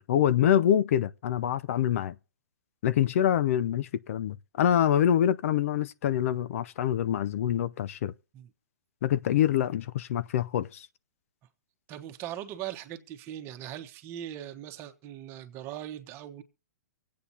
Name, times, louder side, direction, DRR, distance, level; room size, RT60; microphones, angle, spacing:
voice 1, 0.0-2.1 2.8-8.1 9.0-10.9, left 10 dB, 55° left, 0.5 m, -25 dB
voice 2, 11.9-16.4, right 11 dB, 30° right, 1.3 m, -40 dB
24.0 x 8.5 x 2.8 m
hypercardioid pair, 145°, 9 cm